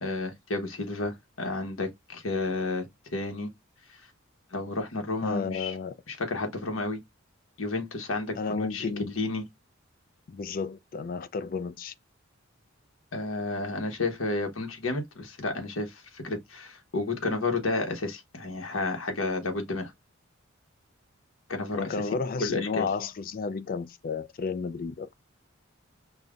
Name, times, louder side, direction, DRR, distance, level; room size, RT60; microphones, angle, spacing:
voice 1, 0.0-3.5 4.5-5.7 6.1-7.0 7.6-9.4 13.1-19.9 21.5-22.0 22.4-22.8, left 2 dB, 70° left, 1.0 m, -31 dB
voice 2, 5.2-5.9 8.4-9.1 10.3-11.9 21.7-25.1, left 4 dB, 45° left, 0.3 m, -32 dB
5.3 x 2.2 x 2.4 m
head